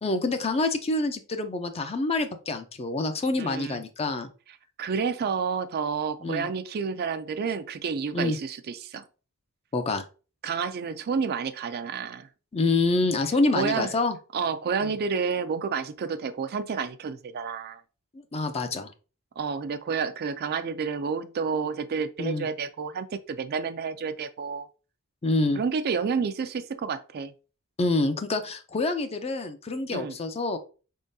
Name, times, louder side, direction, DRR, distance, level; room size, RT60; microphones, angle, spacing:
voice 1, 0.0-4.3 6.2-6.5 8.1-8.4 9.7-10.1 12.5-14.2 14.8-14.9 18.3-18.9 22.2-22.5 25.2-25.6 27.8-30.6, left 2 dB, 30° left, 0.5 m, -26 dB
voice 2, 3.4-3.8 4.8-9.0 10.4-12.3 13.5-13.9 14.3-17.8 19.4-24.7 25.6-27.3 29.9-30.2, right 5 dB, 45° right, 0.4 m, -30 dB
5.3 x 3.7 x 2.6 m
head